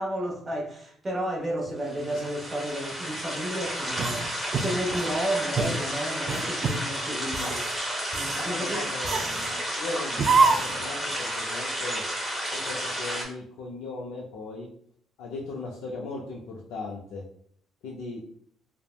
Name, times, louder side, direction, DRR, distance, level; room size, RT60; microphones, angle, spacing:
voice 1, 0.0-7.6 8.1-8.8, right 1 dB, 20° right, 0.7 m, -32 dB
sound 1, 1.8-13.3, equal, 5° right, 1.1 m, -32 dB
sound 2, 3.9-5.1 5.5-5.8 6.3-6.8 7.2-7.7 8.1-8.5 9.0-9.5 10.2-10.8, right 4 dB, 40° right, 0.3 m, -26 dB
voice 2, 7.1-7.5 8.4-12.0 12.5-14.7 15.2-17.2 17.8-18.2, left 3 dB, 90° left, 0.4 m, -38 dB
3.3 x 2.0 x 2.2 m
cardioid pair, 125°, 0 cm